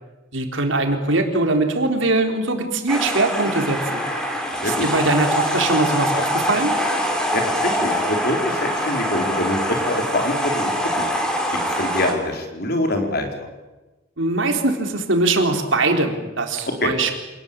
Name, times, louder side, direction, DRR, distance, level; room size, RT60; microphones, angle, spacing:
voice 1, 0.3-4.0 4.6-6.7 14.2-17.1, right 2 dB, 75° right, 4 dB, 3.9 m, -21 dB
sound 1, 2.9-12.1, equal, 5° left, 4.0 m, -24 dB
voice 2, 4.5-4.9 7.3-11.1 11.5-13.5 16.8-16.9, left 1 dB, 55° left, 4 dB, 4.5 m, -25 dB
27.5 x 19.0 x 8.9 m, 1.1 s
head